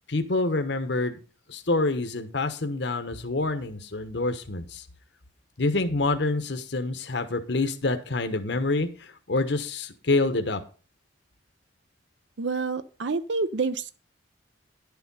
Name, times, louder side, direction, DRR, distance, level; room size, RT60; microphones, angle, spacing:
voice 1, 0.1-1.2 1.5-4.9 5.6-10.6, left 2 dB, 65° left, 8 dB, 1.1 m, -27 dB
voice 2, 12.4-13.9, right 4 dB, 70° right, 12 dB, 0.6 m, -28 dB
11.0 x 7.0 x 5.4 m, 0.36 s
head